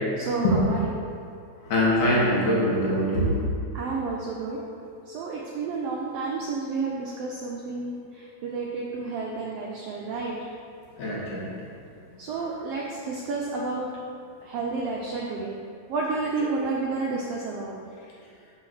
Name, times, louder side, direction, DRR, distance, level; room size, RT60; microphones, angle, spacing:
voice 1, 0.2-0.9 3.7-4.6 5.1-10.4 12.2-13.9 14.4-15.5 15.9-17.8, right 3 dB, 90° right, -3 dB, 1.3 m, -30 dB
voice 2, 1.7-3.4 11.0-11.5, left 1 dB, 85° left, -6 dB, 2.9 m, -23 dB
6.0 x 3.8 x 6.0 m, 2.4 s
omnidirectional pair, 3.4 m